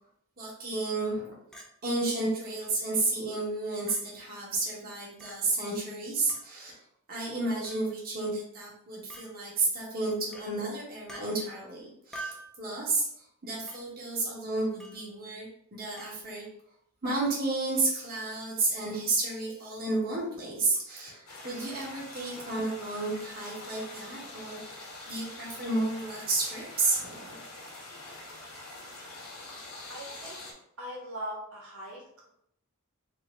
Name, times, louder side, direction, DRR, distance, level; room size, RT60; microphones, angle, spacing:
voice 1, 0.4-1.3 1.8-6.8 7.1-13.1 13.4-15.5 15.7-16.4 17.0-27.4, right 3 dB, 40° right, -6 dB, 1.2 m, -32 dB
Chink clink, 1.5-1.7 2.6-2.7 3.9-4.0 5.2-5.4 6.3-6.5 7.6-7.9 9.1-9.3 10.3-10.5 11.1-11.3 12.1-12.5 13.7-13.8 14.8-15.0 16.0-16.1, right 2 dB, ahead, 0.5 m, -44 dB
sound 1, 21.3-30.5, left 2 dB, 80° left, 1.3 m, -45 dB
voice 2, 29.9-30.4 30.8-32.0, equal, 75° right, -4 dB, 1.3 m, -40 dB
4.4 x 2.1 x 3.6 m, 0.70 s
head